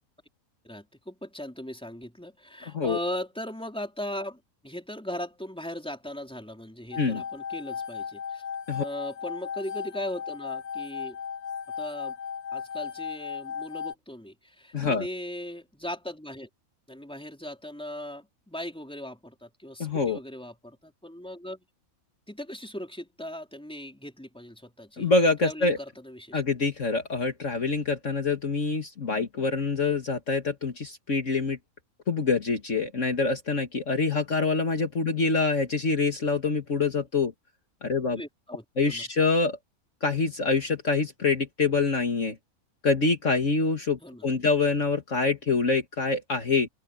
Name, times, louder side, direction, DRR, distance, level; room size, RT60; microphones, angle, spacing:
voice 1, 0.6-8.4 8.8-11.2 11.8-12.1 12.5-16.5 16.9-21.6 22.3-25.1 25.4-26.4 38.2-39.1 44.0-44.4, left 1 dB, 5° left, 4.1 m, -38 dB
voice 2, 2.7-3.0 7.0-7.2 8.7-8.8 14.7-15.1 19.8-20.2 25.0-25.8 26.3-31.6 32.1-37.3 37.8-38.2 38.8-39.6 40.0-42.4 42.8-46.7, left 4 dB, 55° left, 2.2 m, -25 dB
sound 1, 6.9-13.9, left 7 dB, 75° left, 1.9 m, -36 dB
open air
omnidirectional pair, 1.6 m